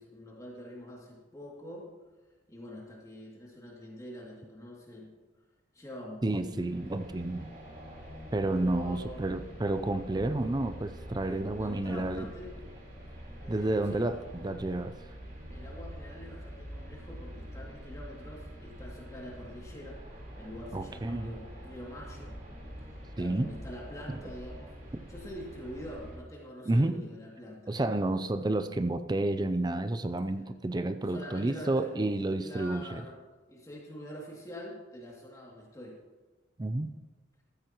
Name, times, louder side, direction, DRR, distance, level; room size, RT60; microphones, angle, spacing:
voice 1, 0.0-1.9 2.5-5.1 5.7-6.5 8.6-9.2 11.3-12.5 13.4-14.0 15.5-20.0 20.4-22.4 22.9-28.1 31.1-32.1 32.4-33.2 33.5-36.0, equal, 15° left, -3 dB, 2.6 m, -45 dB
voice 2, 6.2-7.5 8.3-12.3 13.5-14.9 20.7-21.3 23.2-23.5 24.1-24.2 24.9-25.0 26.7-27.0 27.7-33.0 36.6-37.0, right 2 dB, 20° right, 10 dB, 0.5 m, -30 dB
sound 1, 6.5-26.2, equal, 50° right, 4.0 m, -45 dB
15.0 x 13.5 x 3.0 m, 1.3 s
head